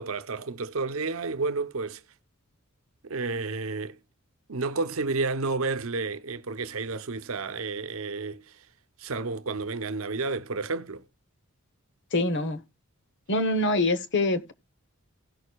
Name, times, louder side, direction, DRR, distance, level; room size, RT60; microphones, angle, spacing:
voice 1, 0.0-2.0 3.0-4.0 4.5-8.7 9.0-11.0, right 3 dB, 70° right, 0.8 m, -31 dB
voice 2, 12.1-12.6 13.3-14.5, left 2 dB, 55° left, 1.1 m, -25 dB
17.5 x 6.5 x 2.3 m
head